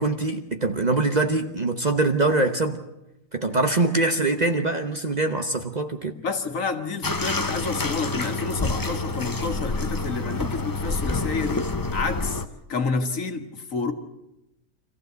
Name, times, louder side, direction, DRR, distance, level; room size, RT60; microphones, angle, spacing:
voice 1, 0.0-2.8 3.3-6.1, right 2 dB, 35° right, 6 dB, 1.0 m, -23 dB
voice 2, 6.1-11.6 11.9-12.4 12.7-13.9, left 4 dB, 65° left, 7 dB, 1.9 m, -29 dB
Bathtub (filling or washing), 7.0-12.4, left 3 dB, 20° left, 0.6 m, -28 dB
25.5 x 15.0 x 8.0 m, 0.91 s
omnidirectional pair, 1.5 m